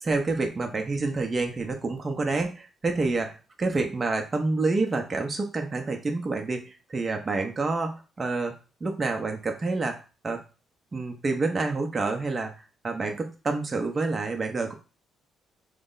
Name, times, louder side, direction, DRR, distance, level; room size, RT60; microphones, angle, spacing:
voice 1, 0.0-8.6 8.8-10.0 10.2-10.4 10.9-12.5 12.8-14.7, right 3 dB, 30° right, 3 dB, 0.8 m, -28 dB
3.2 x 2.1 x 3.9 m, 0.33 s
cardioid pair, 90°, 0 cm